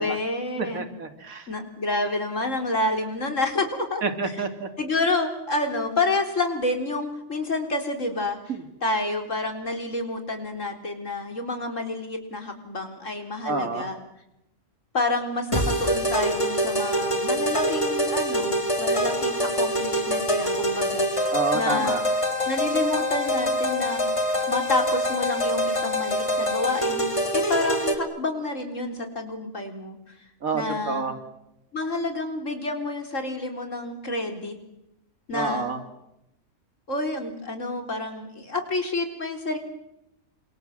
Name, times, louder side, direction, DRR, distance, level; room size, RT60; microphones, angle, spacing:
voice 1, 0.0-0.8 1.5-4.0 4.8-8.4 8.8-14.0 14.9-22.0 22.5-24.0 24.5-27.0 27.3-30.2 30.5-31.0 31.7-34.5 35.3-35.7 36.9-39.6, left 2 dB, 65° left, 5 dB, 4.2 m, -29 dB
voice 2, 0.6-1.5 4.0-4.7 8.5-8.6 13.4-13.9 21.3-22.0 30.4-31.1 35.3-35.8, right 4 dB, 90° right, 8 dB, 2.7 m, -28 dB
sound 1, 15.5-28.0, equal, 20° left, 3.0 m, -25 dB
29.5 x 26.0 x 7.8 m, 0.88 s
omnidirectional pair, 1.4 m